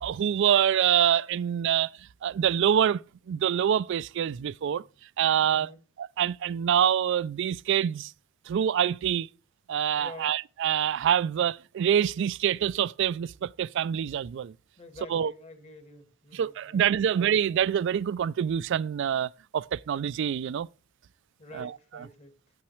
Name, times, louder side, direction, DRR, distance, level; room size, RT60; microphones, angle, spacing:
voice 1, 0.0-1.9 2.2-4.8 5.2-5.7 6.0-8.1 8.5-9.3 9.7-14.5 15.1-15.3 16.3-20.7 21.5-21.7, right 9 dB, 60° right, 0.3 m, -26 dB
voice 2, 4.6-5.0 5.4-5.8 9.9-10.4 14.8-17.1 21.4-22.4, left 2 dB, 30° left, 1.3 m, -48 dB
8.7 x 8.6 x 3.1 m
head